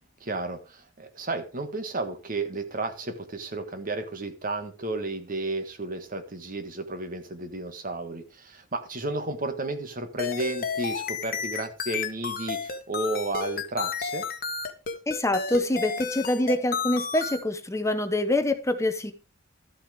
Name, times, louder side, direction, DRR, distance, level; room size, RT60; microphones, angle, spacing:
voice 1, 0.2-14.2, right 2 dB, 45° right, 1.6 m, -32 dB
sound 1, 10.2-17.4, left 5 dB, 50° left, 1.4 m, -32 dB
voice 2, 15.1-19.1, left 1 dB, 15° left, 0.9 m, -25 dB
13.0 x 6.4 x 5.0 m
head